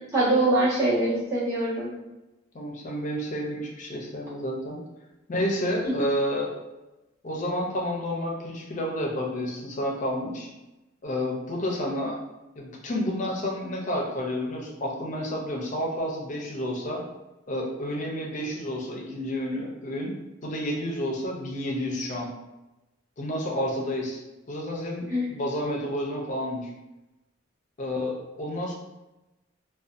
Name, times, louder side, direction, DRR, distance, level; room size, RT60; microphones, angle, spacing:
voice 1, 0.0-1.9 25.1-25.3, right 1 dB, 15° right, -11 dB, 1.1 m, -23 dB
voice 2, 2.5-4.8 5.3-6.5 7.2-10.5 11.0-12.2 12.6-17.0 17.5-20.2 20.4-22.3 23.2-24.2 24.5-26.7 27.8-28.7, equal, 40° left, -1 dB, 0.5 m, -30 dB
2.6 x 2.2 x 2.4 m, 1.0 s
head